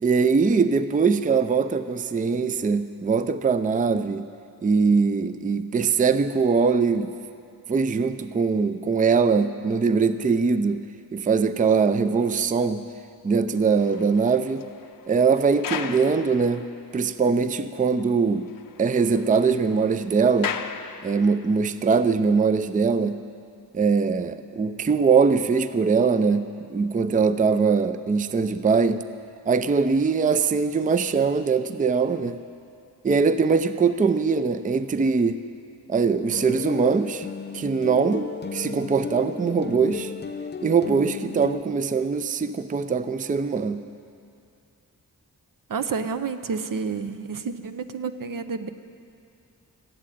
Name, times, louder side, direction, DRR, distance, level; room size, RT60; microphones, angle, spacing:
voice 1, 0.0-4.3 4.6-7.1 7.7-10.8 11.1-12.8 13.2-14.6 15.1-16.6 16.9-18.5 18.8-20.6 21.0-23.2 23.7-29.0 29.5-32.4 33.0-35.4 35.9-37.3 37.5-40.1 40.6-43.8, right 5 dB, 25° right, 12 dB, 0.4 m, -22 dB
sound 1, 13.5-17.2 17.5-17.6 18.0-18.1 18.3-21.6 22.3-22.5, left 7 dB, 70° left, 0.7 m, -38 dB
sound 2, 36.3-41.6, left 5 dB, 30° left, 0.5 m, -35 dB
voice 2, 45.7-48.7, right 5 dB, 70° right, 9 dB, 0.7 m, -30 dB
15.0 x 7.6 x 9.2 m, 2.5 s
wide cardioid pair, 80°, 35 cm